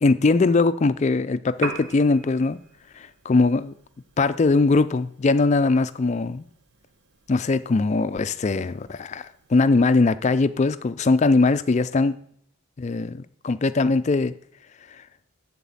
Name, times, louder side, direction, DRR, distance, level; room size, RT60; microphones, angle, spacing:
voice 1, 0.0-2.6 3.0-3.7 4.2-6.4 7.3-12.2 12.8-14.3, left 3 dB, 30° left, 0.3 m, -21 dB
Piano, 1.5-9.6, right 4 dB, 50° right, 1.0 m, -42 dB
11.0 x 4.1 x 7.1 m
head